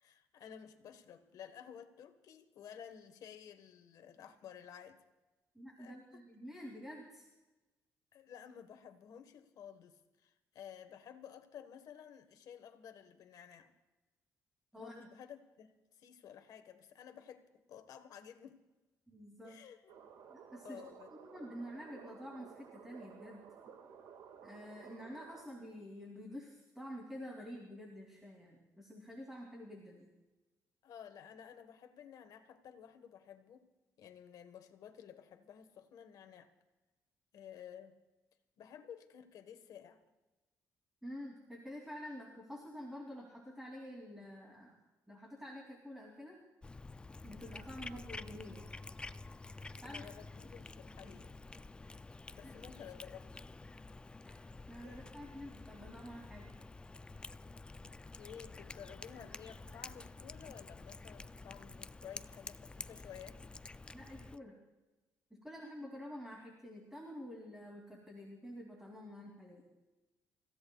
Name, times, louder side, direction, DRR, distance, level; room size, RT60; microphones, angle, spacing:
voice 1, 0.0-5.0 5.8-6.2 8.1-13.7 14.7-18.6 19.4-19.9 20.6-21.1 30.8-33.7 34.0-36.5 37.3-38.0 38.6-40.0 49.8-51.4 52.3-53.5 54.8-55.0 57.8-63.4, left 8 dB, 70° left, 8 dB, 1.4 m, -53 dB
voice 2, 5.5-7.3 14.7-14.9 19.1-19.6 20.3-20.8 21.1-23.4 24.4-30.1 41.0-44.8 45.1-46.4 47.2-48.7 49.7-50.0 51.0-51.1 52.4-52.5 54.2-56.4 63.9-64.5 65.3-69.6, equal, 5° right, -1 dB, 2.8 m, -49 dB
sound 1, 19.9-25.5, right 7 dB, 90° right, 1.9 m, -55 dB
Cat, 46.6-64.4, left 3 dB, 15° left, 0.4 m, -50 dB
29.5 x 16.0 x 2.4 m, 1.1 s
cardioid pair, 120°, 6 cm